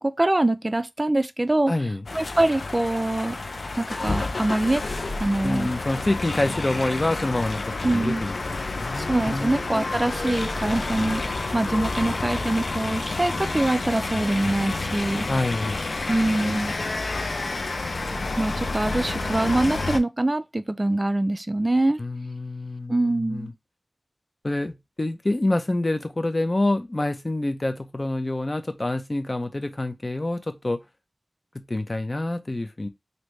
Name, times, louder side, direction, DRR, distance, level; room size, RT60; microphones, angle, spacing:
voice 1, 0.0-1.7 2.1-3.4 3.8-4.8 5.2-5.7 7.8-8.2 9.0-11.2 11.5-15.3 16.1-16.7 18.4-22.0 22.9-23.5, right 1 dB, 30° right, 0.3 m, -24 dB
voice 2, 1.7-2.0 5.4-7.6 7.9-9.6 15.3-15.8 22.0-23.5 24.4-30.8 31.5-32.9, left 2 dB, 40° left, 0.6 m, -27 dB
sound 1, 2.1-20.0, left 3 dB, 85° left, 0.4 m, -29 dB
3.2 x 2.7 x 3.1 m
wide cardioid pair, 70°, 0 cm